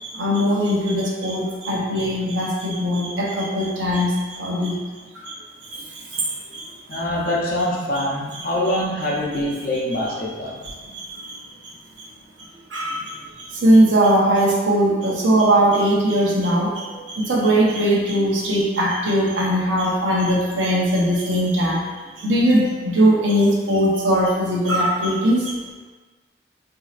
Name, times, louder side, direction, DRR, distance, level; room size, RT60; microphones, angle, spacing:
voice 1, 0.0-4.7 5.1-5.3 5.7-5.8 6.1-6.6 6.9-7.0 10.9-11.4 12.7-21.8 22.2-25.7, right 1 dB, 85° right, -4 dB, 0.8 m, -20 dB
voice 2, 6.9-10.6 10.8-11.0, left 1 dB, 50° left, -4 dB, 0.7 m, -24 dB
4.1 x 2.7 x 2.5 m, 1.3 s
head